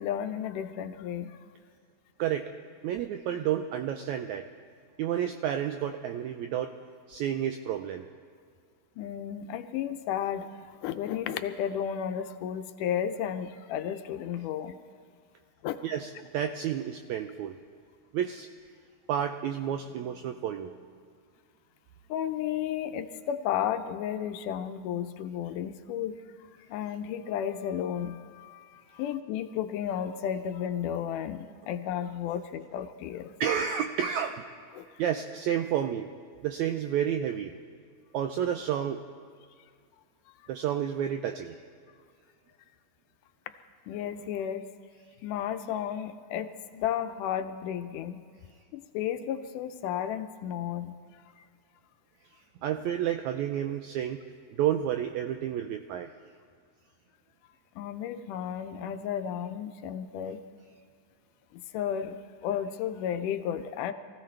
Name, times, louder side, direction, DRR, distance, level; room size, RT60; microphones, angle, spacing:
voice 1, 0.0-1.4 9.0-10.5 10.8-14.8 15.6-15.8 22.1-26.2 26.7-33.3 34.8-34.9 43.9-44.7 45.2-48.2 48.7-50.9 57.8-60.4 61.7-62.2 62.4-63.9, left 9 dB, 80° left, 9 dB, 2.1 m, -33 dB
voice 2, 2.2-2.5 2.8-4.5 5.0-6.7 7.1-8.1 15.8-17.5 18.1-18.5 19.1-20.7 33.4-34.4 35.0-36.1 36.4-37.5 38.1-39.0 40.5-41.5 52.6-54.2 54.5-56.1, right 9 dB, 85° right, 7 dB, 1.6 m, -30 dB
23.5 x 15.5 x 3.3 m, 2.1 s
omnidirectional pair, 3.8 m